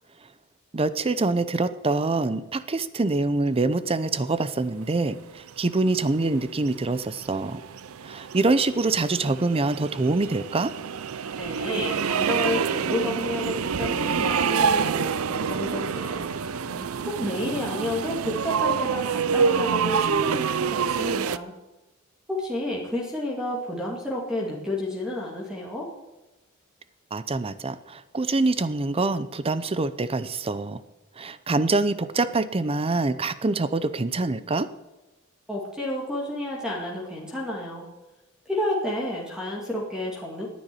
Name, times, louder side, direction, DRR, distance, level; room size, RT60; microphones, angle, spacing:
voice 1, 0.7-7.6 8.0-10.7 16.6-16.9 27.1-30.8 31.2-34.7, right 3 dB, 25° right, 14 dB, 0.6 m, -25 dB
sound 1, 5.5-21.4, right 6 dB, 90° right, 0.5 m, -27 dB
voice 2, 11.4-16.4 17.1-21.5 22.3-25.9 35.5-37.9 38.5-40.5, left 1 dB, 5° right, -3 dB, 2.2 m, -30 dB
10.5 x 9.4 x 9.7 m, 1.0 s
head